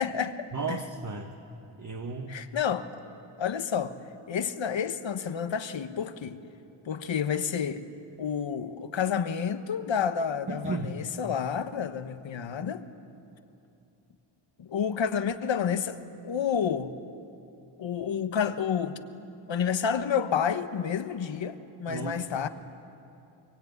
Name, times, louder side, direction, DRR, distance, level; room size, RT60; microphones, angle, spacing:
voice 1, 0.0-0.8 2.3-2.9 3.4-3.9 4.3-6.4 6.8-7.8 8.2-12.8 14.6-16.0 16.2-16.9 17.8-19.0 19.5-22.5, left 7 dB, 70° left, 1.3 m, -29 dB
voice 2, 0.5-1.3 1.8-2.4 10.5-11.0 21.9-22.3, right 4 dB, 40° right, 1.5 m, -34 dB
23.5 x 23.0 x 9.5 m
wide cardioid pair, 105°, 47 cm